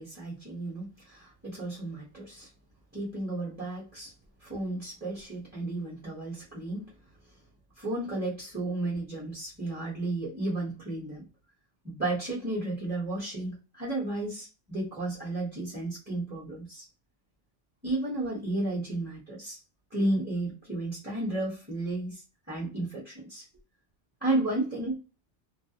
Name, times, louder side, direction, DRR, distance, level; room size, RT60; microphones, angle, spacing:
voice 1, 0.0-2.5 2.9-4.1 4.4-6.9 7.8-11.2 11.8-16.9 17.8-19.6 19.9-23.5 24.2-25.0, right 2 dB, 10° right, -7 dB, 0.8 m, -33 dB
2.4 x 2.1 x 2.7 m, 0.31 s
omnidirectional pair, 1.3 m